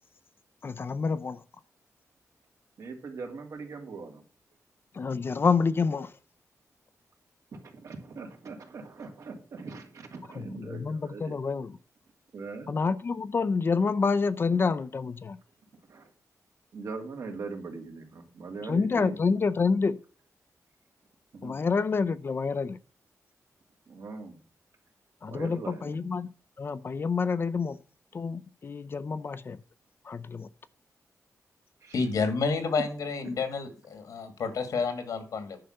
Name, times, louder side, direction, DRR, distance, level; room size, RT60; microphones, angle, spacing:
voice 1, 0.6-1.4 5.0-6.1 10.4-11.7 12.7-15.4 18.7-20.0 21.4-22.8 25.2-26.3 26.6-27.8 28.1-29.6 30.1-30.5, left 5 dB, 40° left, 0.6 m, -28 dB
voice 2, 2.8-4.2 7.5-11.3 12.3-12.7 14.5-14.6 15.9-16.1 16.7-19.3 21.3-21.6 23.9-24.4 25.3-26.1 31.8-32.0, right 4 dB, 70° right, 2.7 m, -41 dB
voice 3, 31.9-35.6, left 4 dB, 85° left, 2.3 m, -30 dB
10.5 x 5.7 x 6.6 m
wide cardioid pair, 140°, 6 cm